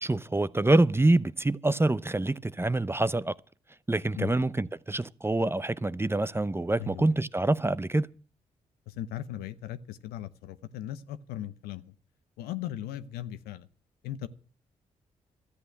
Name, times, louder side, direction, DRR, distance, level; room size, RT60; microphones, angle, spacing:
voice 1, 0.0-3.3 3.9-8.1, right 2 dB, 15° right, 0.7 m, -26 dB
voice 2, 6.8-7.2 8.9-11.9 12.4-13.7 14.0-14.3, left 12 dB, 85° left, 0.8 m, -38 dB
13.0 x 8.3 x 9.1 m
hypercardioid pair, 45°, 16 cm